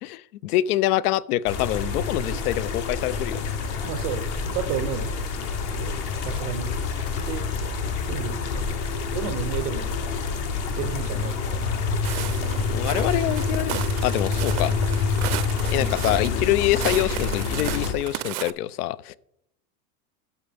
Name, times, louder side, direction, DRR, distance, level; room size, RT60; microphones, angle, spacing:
voice 1, 0.0-3.4 12.7-14.7 15.7-19.2, left 14 dB, 80° left, 22 dB, 0.5 m, -25 dB
sound 1, 1.5-17.9, left 5 dB, 30° left, 0.6 m, -27 dB
voice 2, 3.8-5.1 5.8-6.0 6.2-6.7 7.2-7.5 8.0-8.7 9.1-9.9 10.3-10.4 10.8-11.8 15.7-16.0, right 9 dB, 30° right, 11 dB, 0.5 m, -32 dB
Walk footsteps, 12.0-18.5, right 16 dB, 70° right, 0.6 m, -34 dB
12.5 x 6.9 x 3.3 m, 0.79 s
supercardioid pair, 170°, 45 cm